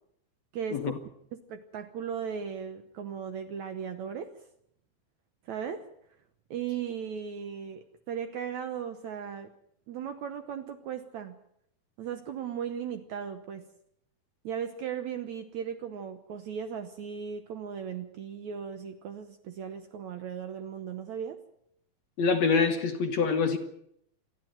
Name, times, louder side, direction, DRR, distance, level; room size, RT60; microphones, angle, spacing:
voice 1, 0.5-1.0 1.3-4.5 5.5-5.9 6.5-9.5 9.9-11.4 12.0-13.7 14.4-21.4, right 7 dB, 70° right, 1.9 m, -37 dB
voice 2, 22.2-23.6, left 5 dB, 60° left, 2.0 m, -25 dB
27.5 x 11.0 x 9.2 m
omnidirectional pair, 4.2 m